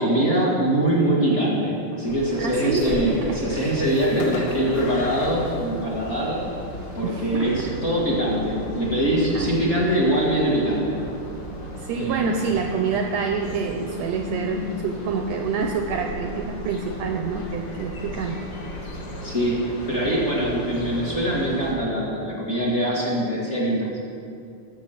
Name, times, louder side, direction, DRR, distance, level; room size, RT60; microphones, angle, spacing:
voice 1, 0.0-6.4 6.9-11.0 11.9-12.5 19.2-24.1, right 1 dB, 30° left, -5 dB, 1.3 m, -23 dB
sound 1, 2.0-21.7, equal, 50° left, 2.2 m, -35 dB
voice 2, 2.4-3.8 4.1-4.3 7.0-7.8 9.3-9.6 11.8-18.4, right 5 dB, 80° right, 4 dB, 1.6 m, -27 dB
Fireworks, 2.6-3.6 4.2-6.4, left 5 dB, 85° left, 2.3 m, -39 dB
13.0 x 6.2 x 5.7 m, 2.4 s
omnidirectional pair, 3.6 m